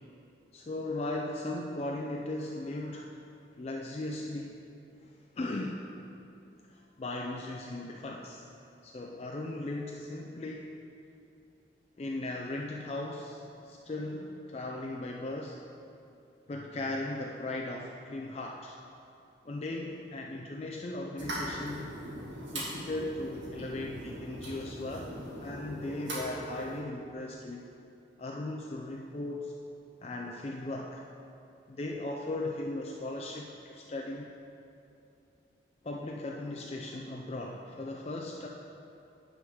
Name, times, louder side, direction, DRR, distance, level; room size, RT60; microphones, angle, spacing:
voice 1, 0.5-3.1 3.6-4.7 5.0-5.8 6.7-8.4 8.8-10.7 12.0-15.6 16.5-18.8 19.4-22.0 22.5-27.7 28.2-29.6 30.0-31.0 31.7-34.4 35.8-38.5, left 2 dB, 35° left, -1 dB, 0.4 m, -37 dB
sound 1, 21.2-26.8, equal, 85° right, 1.8 m, -40 dB
9.5 x 3.8 x 6.1 m, 2.7 s
head